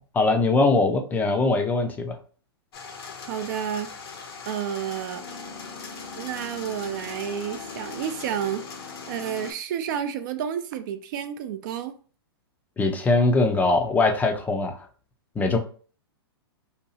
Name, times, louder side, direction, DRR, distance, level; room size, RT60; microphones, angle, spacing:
voice 1, 0.1-2.2 12.8-14.9 15.4-15.6, left 3 dB, 10° left, 5 dB, 0.4 m, -21 dB
sound 1, 2.7-9.5, left 5 dB, 60° left, 0.8 m, -39 dB
voice 2, 3.3-3.9 4.5-5.2 6.2-8.7 9.1-12.0, right 9 dB, 50° right, 10 dB, 0.4 m, -30 dB
2.8 x 2.2 x 2.7 m, 0.40 s
hypercardioid pair, 120°, 14 cm